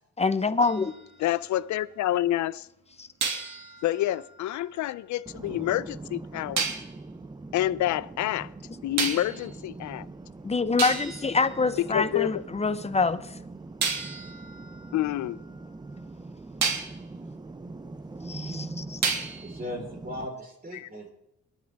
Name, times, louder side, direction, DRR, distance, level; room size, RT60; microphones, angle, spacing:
voice 1, 0.2-0.9 3.0-3.1 10.4-13.2 18.3-19.0, left 4 dB, 20° left, 0.9 m, -26 dB
sound 1, 0.6-2.0 3.2-5.3 6.6-7.0 9.0-9.5 10.3-10.4 10.8-12.4 13.8-16.0 16.6-17.0 19.0-19.6, right 5 dB, 60° right, 2.2 m, -33 dB
voice 2, 1.2-2.7 3.8-6.6 7.5-8.5 8.8-10.1 11.8-12.4 14.9-15.4 20.7-20.9, left 13 dB, 70° left, 0.6 m, -28 dB
sound 2, 5.3-20.3, right 3 dB, 15° right, 0.6 m, -42 dB
voice 3, 19.4-21.1, left 1 dB, 30° right, 4.2 m, -38 dB
24.5 x 10.5 x 3.5 m
cardioid pair, 90°, 30 cm